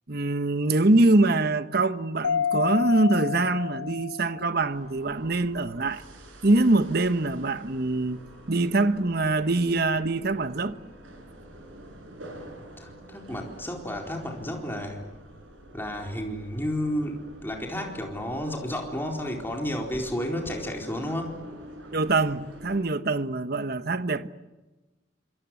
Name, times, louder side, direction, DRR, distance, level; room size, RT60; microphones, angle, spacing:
voice 1, 0.1-6.0 6.4-10.8 21.9-24.3, right 2 dB, 50° right, 1.2 m, -24 dB
Mallet percussion, 2.2-4.8, left 8 dB, 75° left, 1.0 m, -29 dB
sound 1, 4.5-22.8, right 1 dB, 85° right, 7.6 m, -47 dB
voice 2, 12.8-15.0 15.7-21.4, left 1 dB, 10° left, 4.3 m, -32 dB
27.5 x 26.5 x 7.7 m
head